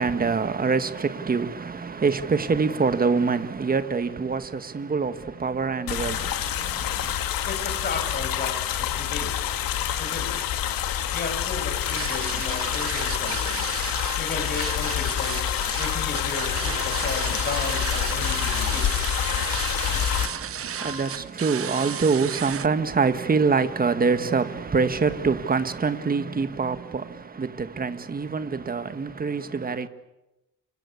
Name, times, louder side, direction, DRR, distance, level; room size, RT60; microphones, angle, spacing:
voice 1, 0.0-7.1 19.8-29.9, right 5 dB, 25° right, 1.7 m, -25 dB
sound 1, 5.9-20.3, left 10 dB, 85° left, 2.6 m, -27 dB
voice 2, 7.4-9.3 10.0-10.4 11.1-13.7 14.2-15.5 15.7-18.9, left 3 dB, 30° left, 6.6 m, -34 dB
sound 2, 11.9-22.7, right 9 dB, 40° right, 1.0 m, -34 dB
sound 3, 13.7-22.1, left 7 dB, 60° left, 2.0 m, -42 dB
29.0 x 24.0 x 8.6 m
cardioid pair, 135°, 33 cm